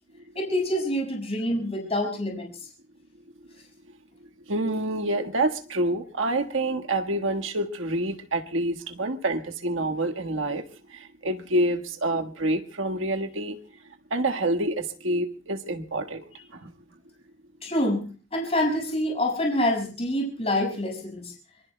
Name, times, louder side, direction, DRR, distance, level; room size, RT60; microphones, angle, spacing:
voice 1, 0.3-2.5 17.6-18.0 18.3-21.3, left 1 dB, 35° left, 5.8 m, -26 dB
voice 2, 4.5-13.6 14.1-16.2 16.5-16.7, right 1 dB, 80° right, 1.6 m, -27 dB
25.5 x 24.0 x 2.2 m
head